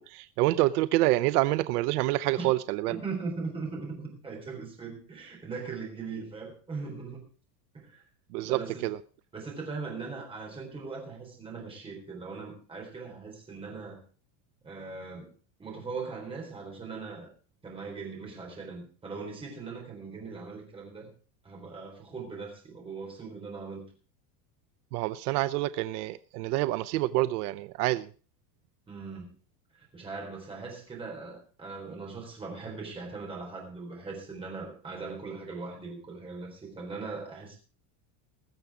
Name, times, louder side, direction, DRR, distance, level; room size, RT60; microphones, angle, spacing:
voice 1, 0.0-3.0 8.3-9.0 24.9-28.1, right 17 dB, 75° right, 0.7 m, -27 dB
voice 2, 2.9-7.2 7.7-8.0 8.4-8.9 9.3-14.0 14.6-15.3 15.6-17.3 17.6-21.1 21.4-23.9 28.9-29.3 29.8-37.6, right 4 dB, 10° right, 4.0 m, -40 dB
21.0 x 7.0 x 4.9 m
cardioid pair, 180°, 46 cm